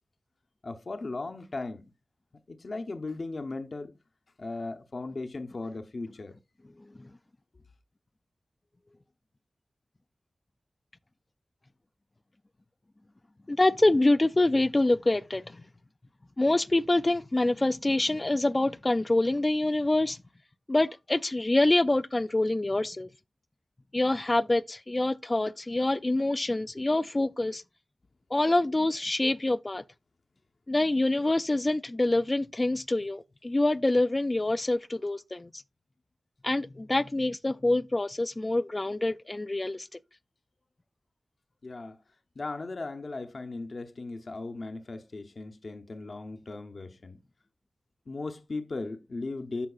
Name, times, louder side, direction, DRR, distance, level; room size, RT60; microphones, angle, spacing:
voice 1, 0.6-1.9 2.5-3.9 4.4-6.4 41.6-42.0 42.4-47.2 48.1-49.7, left 3 dB, 60° left, 0.7 m, -37 dB
voice 2, 6.8-7.1 13.5-15.6 16.4-20.2 20.7-23.1 23.9-27.6 28.3-29.8 30.7-35.5 36.4-39.9, left 2 dB, 30° left, 0.3 m, -26 dB
12.5 x 4.6 x 2.3 m
wide cardioid pair, 65°, 0 cm